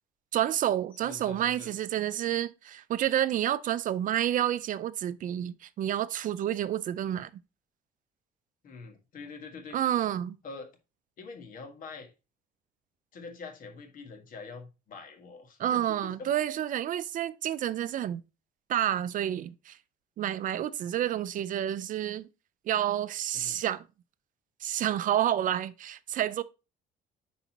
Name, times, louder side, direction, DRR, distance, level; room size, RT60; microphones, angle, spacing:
voice 1, 0.3-7.3 9.7-10.4 15.6-18.2 18.7-19.8 20.2-22.3 22.7-23.8 24.6-26.4, right 11 dB, 50° right, 0.5 m, -29 dB
voice 2, 1.0-1.7 8.6-9.8 10.4-10.7 11.2-12.1 13.1-16.3 23.3-23.6, left 4 dB, 55° left, 1.6 m, -45 dB
10.5 x 4.0 x 2.9 m
cardioid pair, 110°, 17 cm